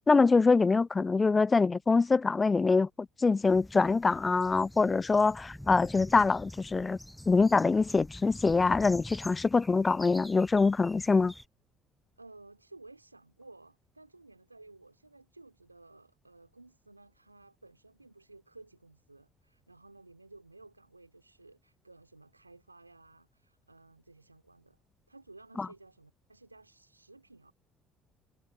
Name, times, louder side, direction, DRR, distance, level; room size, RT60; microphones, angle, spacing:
voice 1, 0.1-2.9 3.2-7.0 7.3-11.3 25.6-25.7, left 4 dB, 25° left, 0.3 m, -24 dB
sound 1, 3.4-11.5, equal, 5° left, 7.1 m, -47 dB
voice 2, 12.2-24.8 25.1-27.5, right 2 dB, 90° right, 3.3 m, -55 dB
figure-of-eight pair, 55°, 0 cm